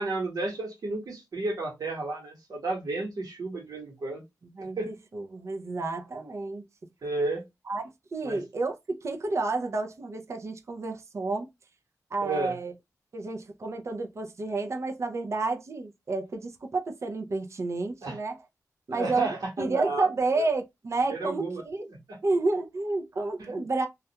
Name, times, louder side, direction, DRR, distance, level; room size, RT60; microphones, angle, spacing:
voice 1, 0.0-4.2 4.8-4.9 7.0-7.4 8.2-8.4 12.2-12.6 18.0-18.2 18.9-20.1 20.3-20.4 21.1-21.6 22.1-22.2 23.4-23.5, right 3 dB, 70° right, 1.1 m, -32 dB
voice 2, 4.5-6.6 7.7-7.8 8.1-11.5 12.1-12.7 13.1-18.4 18.9-21.9 22.2-23.9, right 3 dB, 50° right, 0.5 m, -30 dB
2.3 x 2.2 x 2.8 m
wide cardioid pair, 135°, 6 cm